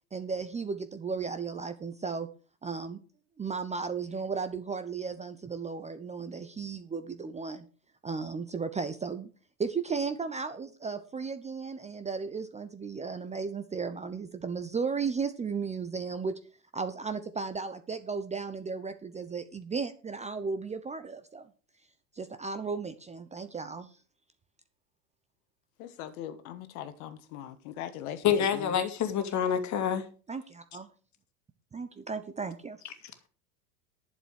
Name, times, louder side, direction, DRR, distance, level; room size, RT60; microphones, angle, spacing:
voice 1, 0.1-2.3 2.6-3.0 3.4-7.6 8.0-9.3 9.6-16.4 16.7-21.5 22.1-23.9 30.3-30.4 30.7-30.9 31.7-32.8, right 5 dB, 15° right, 0.8 m, -35 dB
voice 2, 25.8-28.7, left 11 dB, 55° left, 1.5 m, -41 dB
voice 3, 28.2-30.0, left 8 dB, 35° left, 2.2 m, -27 dB
11.0 x 7.1 x 6.4 m
figure-of-eight pair, 85°, 50 cm